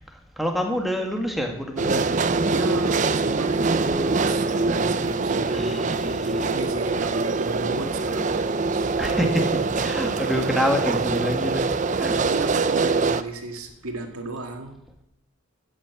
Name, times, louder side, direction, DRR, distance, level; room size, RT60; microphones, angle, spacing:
voice 1, 0.4-2.1 5.4-6.5 9.0-11.7 12.0-12.2 12.6-12.8, equal, ahead, 1.7 m, -27 dB
sound 1, 1.8-13.2, right 3 dB, 35° right, 0.5 m, -24 dB
voice 2, 2.3-9.4 10.1-10.3 12.0-14.8, right 2 dB, 85° right, 2.0 m, -34 dB
12.0 x 8.7 x 8.2 m
head